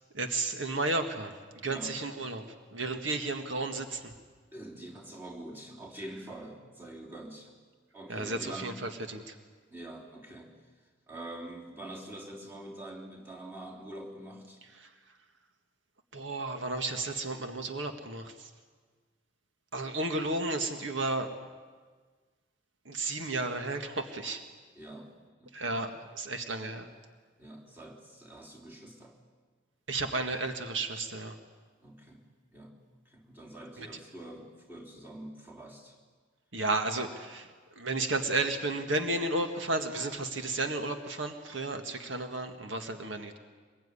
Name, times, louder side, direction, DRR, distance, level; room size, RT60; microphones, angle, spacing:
voice 1, 0.1-1.3 1.6-2.4 2.7-4.1 8.1-9.3 16.1-18.5 19.7-21.3 22.9-24.4 25.5-26.9 29.9-31.4 33.8-33.9 36.5-37.5 37.8-43.4, right 2 dB, 75° right, 6 dB, 1.9 m, -33 dB
voice 2, 4.5-7.5 7.9-8.8 9.7-10.6 11.1-14.6 24.8-25.1 25.4-25.8 27.4-29.2 31.8-32.3 32.5-36.0, right 1 dB, 10° right, -1 dB, 3.5 m, -45 dB
24.5 x 22.0 x 9.9 m, 1.5 s
head